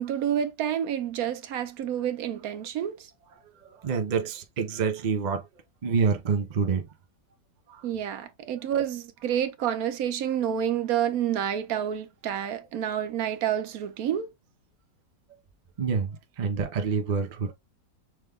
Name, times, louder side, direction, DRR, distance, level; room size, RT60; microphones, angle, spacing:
voice 1, 0.0-3.1 7.8-14.3, right 9 dB, 65° right, 1.0 m, -29 dB
voice 2, 3.6-5.4 5.8-6.9 7.7-7.8 15.8-17.5, right 5 dB, 85° right, 0.4 m, -27 dB
6.1 x 2.3 x 3.4 m
omnidirectional pair, 1.9 m